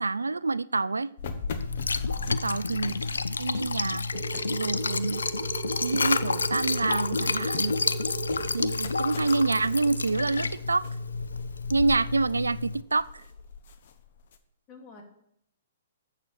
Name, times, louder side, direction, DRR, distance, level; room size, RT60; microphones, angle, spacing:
voice 1, 0.0-1.1 2.3-2.9 3.3-4.1 4.5-5.2 5.8-7.8 8.5-10.8 11.7-13.2, right 3 dB, 85° right, 19 dB, 0.3 m, -27 dB
sound 1, 1.2-6.4 6.7-14.4, left 5 dB, 55° left, 1.1 m, -40 dB
Liquid, 1.6-12.8, left 4 dB, 80° left, 0.5 m, -30 dB
voice 2, 2.0-2.6 14.7-15.0, left 4 dB, 30° left, 2 dB, 2.6 m, -48 dB
sound 2, 4.1-12.5, right 8 dB, 65° right, 1.1 m, -40 dB
7.5 x 6.5 x 7.1 m, 0.71 s
figure-of-eight pair, 120°, 0 cm